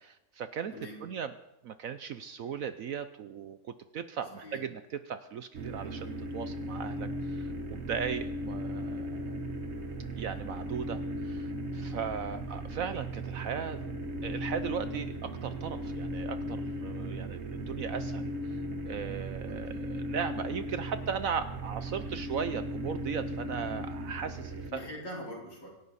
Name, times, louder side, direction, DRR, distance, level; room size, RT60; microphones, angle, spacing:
voice 1, 0.1-1.3 1.6-4.8 5.1-9.4 10.1-13.8 14.2-18.6 18.9-24.8, right 7 dB, 65° right, 11 dB, 0.9 m, -37 dB
voice 2, 0.7-1.0 4.3-4.6 10.5-10.6 13.8-13.9 19.5-19.8 24.7-25.7, left 1 dB, 90° left, -3 dB, 5.1 m, -43 dB
sound 1, 5.5-24.7, right 1 dB, 40° right, 1.5 m, -37 dB
25.5 x 11.0 x 4.2 m, 0.90 s
omnidirectional pair, 1.9 m